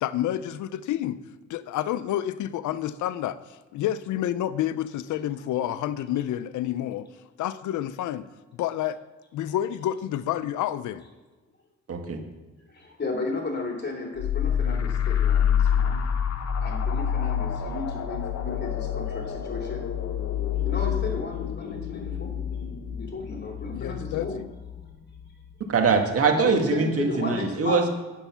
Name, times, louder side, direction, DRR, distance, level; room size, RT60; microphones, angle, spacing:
voice 1, 0.0-1.2 1.5-7.1 7.4-8.3 8.6-9.0 9.3-11.0 23.8-24.5, left 12 dB, 75° left, 15 dB, 0.6 m, -29 dB
voice 2, 12.7-16.0 16.6-19.8 20.5-22.3 23.0-24.4 26.3-27.9, left 3 dB, 35° left, 1 dB, 3.0 m, -34 dB
sound 1, 14.2-25.5, left 8 dB, 60° left, 1.2 m, -28 dB
voice 3, 25.7-27.9, right 5 dB, 50° right, 4 dB, 1.6 m, -23 dB
9.4 x 8.1 x 5.7 m, 1.2 s
cardioid pair, 90°, 30 cm